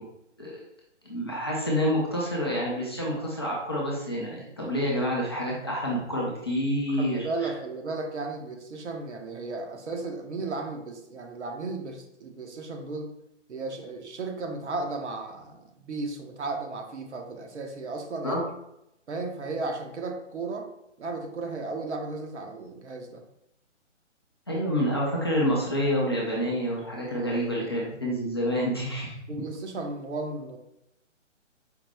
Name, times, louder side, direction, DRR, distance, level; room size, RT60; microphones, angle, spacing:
voice 1, 1.0-7.5 18.2-18.4 24.5-29.5, equal, 20° left, -5 dB, 0.5 m, -28 dB
voice 2, 6.9-13.1 13.5-18.4 19.1-20.7 21.0-23.2 29.3-30.6, right 3 dB, 65° right, 3 dB, 0.9 m, -35 dB
4.9 x 2.1 x 3.4 m, 0.81 s
figure-of-eight pair, 145°, 37 cm